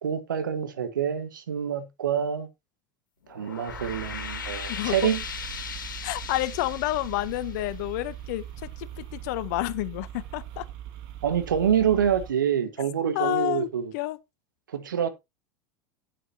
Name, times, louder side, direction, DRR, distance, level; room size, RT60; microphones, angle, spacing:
voice 1, 0.0-2.5 3.3-5.2 11.2-13.9 14.7-15.1, right 8 dB, 80° right, 1.6 m, -26 dB
sound 1, 3.2-8.5, left 7 dB, 80° left, 2.2 m, -38 dB
sound 2, 3.7-12.3, right 12 dB, 55° right, 2.1 m, -41 dB
voice 2, 4.7-5.1 6.0-10.6 13.1-13.7 13.9-14.2, left 16 dB, 60° left, 0.9 m, -29 dB
12.0 x 8.4 x 2.9 m
hypercardioid pair, 80°, 10 cm